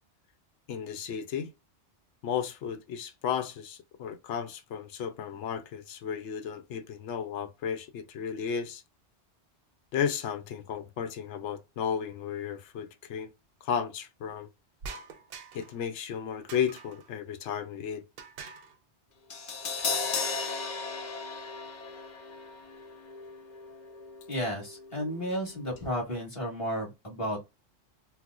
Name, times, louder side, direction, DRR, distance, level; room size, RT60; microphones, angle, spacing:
voice 1, 0.7-1.5 2.2-8.8 9.9-13.3 13.6-14.5 15.5-18.0, left 8 dB, 85° left, 0.9 m, -34 dB
sound 1, 14.8-15.8 16.5-17.1 18.2-18.8 19.8-20.5, right 5 dB, 65° right, 0.7 m, -45 dB
Crash cymbal, 19.3-25.5 25.7-25.9, left 4 dB, 45° left, 0.7 m, -36 dB
voice 2, 24.3-27.4, equal, 30° left, 1.3 m, -33 dB
4.2 x 2.1 x 2.3 m
omnidirectional pair, 1.2 m